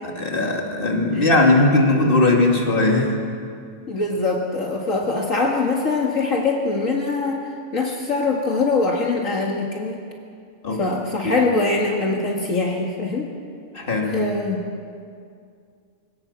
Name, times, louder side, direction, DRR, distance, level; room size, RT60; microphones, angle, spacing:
voice 1, 0.0-3.2 10.6-10.8 11.2-11.5 13.7-14.2, left 2 dB, 40° left, 1 dB, 2.7 m, -19 dB
voice 2, 3.9-10.0 10.8-13.3 14.1-14.6, left 3 dB, 65° left, -1 dB, 2.2 m, -23 dB
24.0 x 18.0 x 7.3 m, 2.3 s
omnidirectional pair, 1.5 m